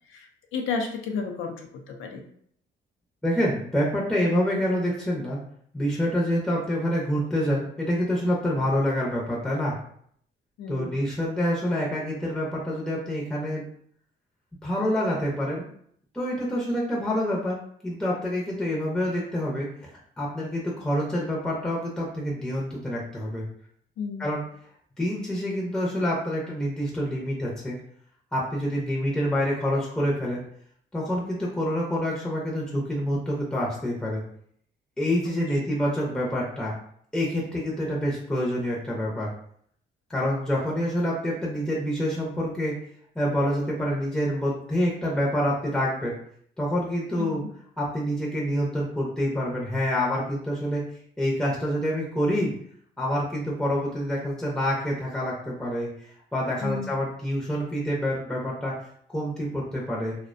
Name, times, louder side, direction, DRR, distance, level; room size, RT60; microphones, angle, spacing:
voice 1, 0.1-2.2 10.6-10.9 24.0-24.4 35.3-35.8 47.2-47.5 56.6-57.0, left 5 dB, 85° left, 3 dB, 0.5 m, -33 dB
voice 2, 3.2-5.4 5.7-9.7 10.7-13.6 14.6-15.7 16.1-19.7 20.2-23.4 24.2-24.4 25.0-27.8 28.3-30.4 30.9-34.2 35.0-36.7 37.1-39.3 40.1-42.7 43.2-46.2 46.6-47.4 47.8-50.8 51.2-52.5 53.0-58.7 59.1-60.1, equal, 5° left, -4 dB, 0.5 m, -27 dB
2.4 x 2.1 x 2.4 m, 0.64 s
cardioid pair, 90°, 20 cm